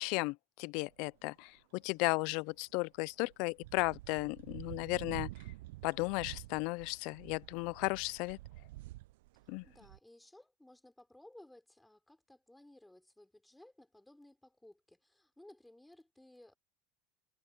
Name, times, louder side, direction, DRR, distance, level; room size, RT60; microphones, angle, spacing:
voice 1, 0.0-5.3 5.8-8.4 9.5-9.6, left 27 dB, 65° left, 0.4 m, -35 dB
sound 1, 0.9-1.1 3.1-10.0, right 19 dB, 80° right, 0.4 m, -49 dB
voice 2, 9.3-16.5, left 1 dB, 5° left, 5.1 m, -59 dB
supercardioid pair, 130°, 0 cm